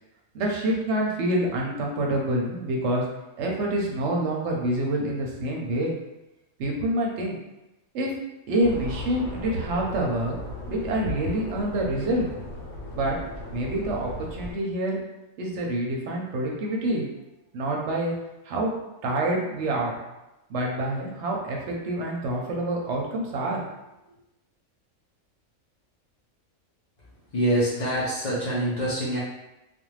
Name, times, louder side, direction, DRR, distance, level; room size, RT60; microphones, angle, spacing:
voice 1, 0.3-3.0 3.4-5.9 6.6-7.4 7.9-8.1 8.5-10.4 10.7-12.3 12.9-13.2 13.5-15.0 15.4-17.1 17.5-18.1 18.5-18.7 19.0-20.0 20.5-23.6, right 1 dB, 65° right, -1 dB, 0.8 m, -27 dB
sound 1, 8.6-14.5, left 2 dB, 70° left, 1.0 m, -36 dB
voice 2, 27.3-29.2, right 1 dB, 50° left, -7 dB, 0.5 m, -25 dB
2.5 x 2.2 x 3.1 m, 0.95 s
omnidirectional pair, 1.4 m